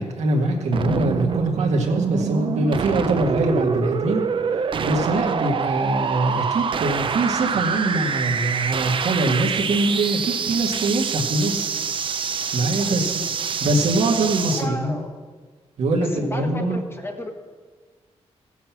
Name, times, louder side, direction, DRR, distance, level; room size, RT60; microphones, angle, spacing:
voice 1, 0.0-4.2 4.8-11.7 12.5-13.1 13.6-15.0 15.8-16.8, right 2 dB, 85° right, 1 dB, 1.9 m, -23 dB
sound 1, 0.7-14.7, right 6 dB, 50° right, 0.6 m, -25 dB
voice 2, 12.8-13.1 14.6-15.2 15.9-17.3, left 1 dB, 20° left, 5 dB, 1.2 m, -34 dB
16.0 x 8.3 x 6.0 m, 1.5 s
wide cardioid pair, 125°, 11 cm